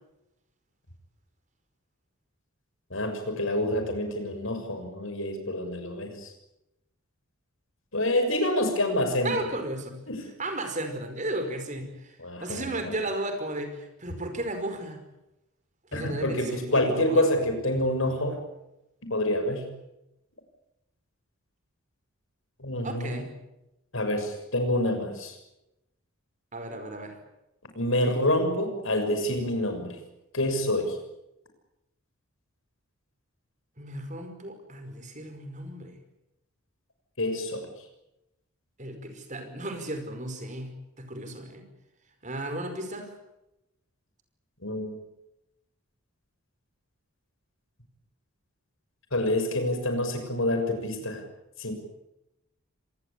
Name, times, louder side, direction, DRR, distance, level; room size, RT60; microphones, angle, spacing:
voice 1, 2.9-6.3 7.9-9.4 10.1-10.2 12.2-13.0 15.9-18.4 19.0-19.7 22.6-23.2 23.9-25.4 27.7-30.0 30.3-31.0 37.2-37.7 44.6-45.0 49.1-51.2 51.6-51.7, left 1 dB, 65° left, 6 dB, 6.6 m, -27 dB
voice 2, 9.2-10.0 10.4-15.0 15.9-17.3 22.8-23.3 26.5-27.2 33.8-36.0 38.8-41.6 42.2-43.1, right 1 dB, 35° right, 7 dB, 5.2 m, -34 dB
26.5 x 19.5 x 8.5 m, 0.90 s
head